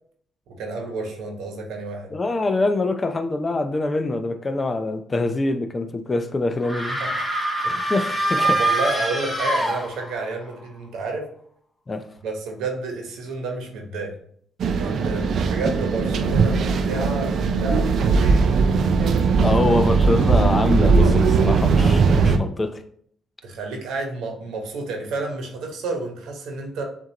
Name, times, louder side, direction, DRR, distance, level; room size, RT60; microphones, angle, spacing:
voice 1, 0.5-2.1 7.0-7.1 7.6-7.9 8.4-11.3 12.2-14.2 14.7-18.6 19.5-19.8 23.4-26.8, right 3 dB, 85° right, 2 dB, 1.1 m, -30 dB
voice 2, 2.1-7.0 7.9-8.6 11.9-12.0 19.4-22.8, left 2 dB, 30° left, 8 dB, 0.5 m, -24 dB
sound 1, 6.6-10.3, right 1 dB, ahead, 1.3 m, -24 dB
sound 2, 14.6-22.4, right 4 dB, 65° right, 0.4 m, -19 dB
7.2 x 2.6 x 2.8 m, 0.63 s
cardioid pair, 90°, 0 cm